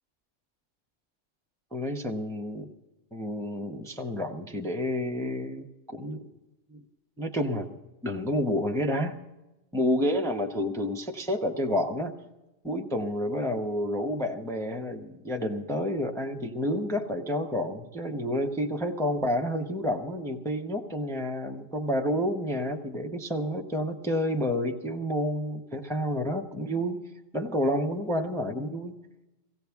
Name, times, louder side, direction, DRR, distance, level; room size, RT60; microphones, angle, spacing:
voice 1, 1.7-2.7 3.1-6.3 6.7-6.8 7.2-9.2 9.7-12.1 12.6-27.0 27.3-29.0, equal, 5° left, 2 dB, 0.7 m, -29 dB
17.5 x 16.0 x 3.6 m, 1.0 s
omnidirectional pair, 1.3 m